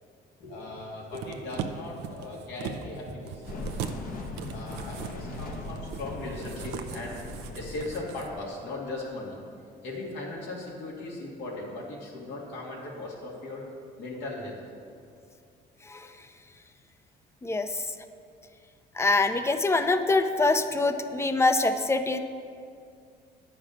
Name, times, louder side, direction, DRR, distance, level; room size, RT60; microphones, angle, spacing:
voice 1, 0.4-3.5 4.5-9.4 9.8-13.7 14.0-14.6 16.2-16.3, left 2 dB, 80° left, -3 dB, 2.4 m, -38 dB
sound 1, 1.1-8.3 8.6-8.7, right 7 dB, 90° right, 0.6 m, -40 dB
sound 2, 3.5-8.5, left 2 dB, 55° left, 1.2 m, -39 dB
voice 2, 19.0-22.2, left 3 dB, 15° left, 9 dB, 0.6 m, -24 dB
9.6 x 5.9 x 6.5 m, 2.3 s
cardioid pair, 110°, 17 cm